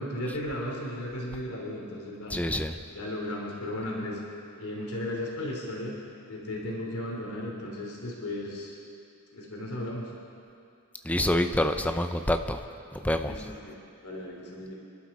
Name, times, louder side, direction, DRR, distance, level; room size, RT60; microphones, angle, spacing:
voice 1, 0.0-2.3 2.9-4.2 4.6-5.9 6.3-8.7 9.3-10.1 13.2-13.7 14.0-14.7, left 1 dB, 80° left, -2 dB, 3.1 m, -35 dB
voice 2, 2.3-2.8 11.0-12.6 12.9-13.3, left 1 dB, 5° left, 6 dB, 0.6 m, -26 dB
28.0 x 11.5 x 4.2 m, 2.5 s
head